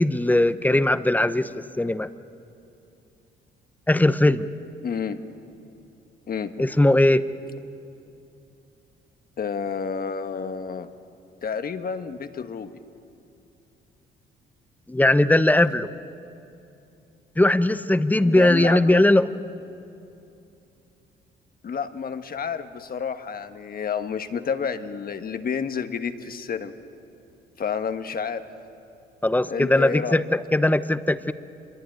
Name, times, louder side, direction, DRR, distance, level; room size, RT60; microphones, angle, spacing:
voice 1, 0.0-2.1 3.9-4.5 6.6-7.2 14.9-15.9 17.4-19.3 29.2-31.3, left 1 dB, 10° left, 13 dB, 0.8 m, -19 dB
voice 2, 4.8-5.2 6.3-6.5 9.4-10.9 11.4-12.8 18.2-19.0 21.6-26.7 27.6-28.4 29.5-30.2, left 6 dB, 50° left, 8 dB, 1.4 m, -30 dB
26.0 x 22.0 x 9.2 m, 2.8 s
cardioid pair, 90°, 20 cm